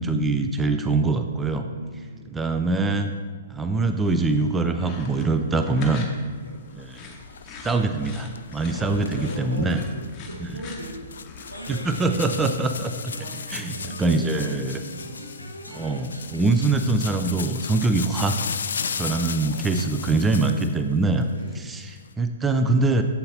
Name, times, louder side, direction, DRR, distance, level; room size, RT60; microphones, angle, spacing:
voice 1, 0.0-1.7 2.3-3.1 3.5-6.1 6.8-7.1 7.6-9.8 11.7-13.1 13.5-14.8 15.7-18.4 19.0-21.3 21.5-23.0, right 3 dB, 10° right, 6 dB, 0.4 m, -23 dB
voice 2, 1.6-2.3 6.4-6.6 8.7-12.4 13.2-15.3 19.5-19.7 21.3-21.7, equal, 85° right, -2 dB, 1.5 m, -39 dB
sound 1, 4.0-12.4, left 4 dB, 20° left, 1.0 m, -44 dB
sound 2, 6.5-20.8 21.1-22.1, left 6 dB, 60° left, 0.3 m, -36 dB
sound 3, 11.5-16.8, equal, 85° left, 0.8 m, -40 dB
7.6 x 7.2 x 2.8 m, 1.5 s
figure-of-eight pair, 115°, 0 cm